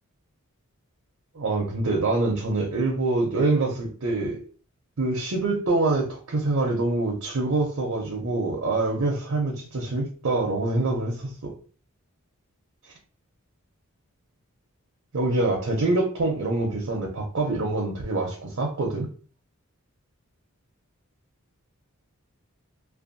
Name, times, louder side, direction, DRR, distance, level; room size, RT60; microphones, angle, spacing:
voice 1, 1.3-4.4 5.0-11.5 15.1-19.1, right 2 dB, 70° right, -1 dB, 0.6 m, -25 dB
2.6 x 2.2 x 2.5 m, 0.39 s
head